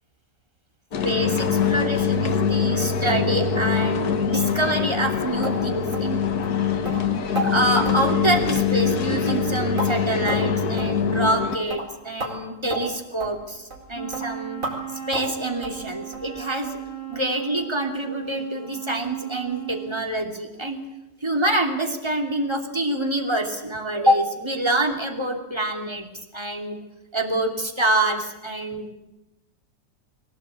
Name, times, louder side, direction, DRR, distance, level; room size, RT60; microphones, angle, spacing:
sound 1, 0.9-11.6, left 6 dB, 70° left, 1.9 m, -23 dB
voice 1, 1.0-6.2 7.4-14.6 15.1-16.7 17.1-20.8 21.2-26.1 26.3-26.8 27.1-28.9, right 1 dB, 15° right, 3 dB, 2.8 m, -26 dB
sound 2, 5.4-5.6 5.9-6.1 6.4-6.6 6.9-7.0 7.4-7.5 7.9-8.0 8.4-8.6 8.9-9.0 9.3-9.9 10.3-10.5 10.8-10.9 11.3-11.4 11.7-11.9 12.2-12.3 12.7-12.8 13.2-13.3 13.7-13.9 14.1-14.3 14.6-14.8 15.1-15.3 15.6-15.8 16.1-16.3 16.6-16.7 17.1-17.2 17.6-17.7, right 2 dB, 50° right, 4.9 m, -32 dB
Wind instrument woodwind instrument, 13.9-20.1, right 9 dB, 35° right, 4.2 m, -36 dB
23.0 x 17.0 x 8.5 m, 0.95 s
omnidirectional pair, 1.8 m